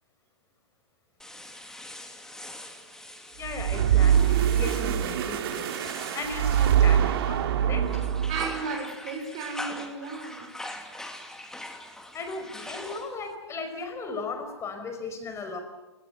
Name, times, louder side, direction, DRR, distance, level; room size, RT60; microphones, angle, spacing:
sound 1, 1.2-7.4 7.8-13.3, left 1 dB, 5° left, 2.7 m, -42 dB
voice 1, 2.3-2.8 3.1-3.2 8.3-10.5, right 5 dB, 40° right, 4 dB, 4.9 m, -35 dB
voice 2, 3.4-5.7 6.1-7.9 12.1-15.6, left 3 dB, 20° left, 7 dB, 5.1 m, -36 dB
sound 2, 3.4-8.7, right 9 dB, 55° right, 2.7 m, -24 dB
29.0 x 19.0 x 8.1 m, 1.1 s
hypercardioid pair, 120°, 14 cm